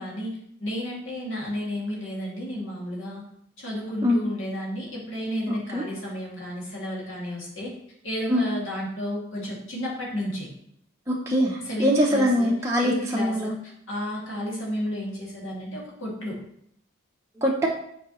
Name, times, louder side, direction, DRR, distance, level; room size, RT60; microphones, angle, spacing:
voice 1, 0.0-3.2 3.6-7.7 8.0-10.5 11.6-12.5 12.8-16.4, equal, 65° left, -4 dB, 2.2 m, -32 dB
voice 2, 5.5-5.8 8.3-8.4 11.1-13.5 17.4-17.7, equal, 15° right, -3 dB, 0.6 m, -23 dB
7.1 x 4.8 x 3.0 m, 0.69 s
head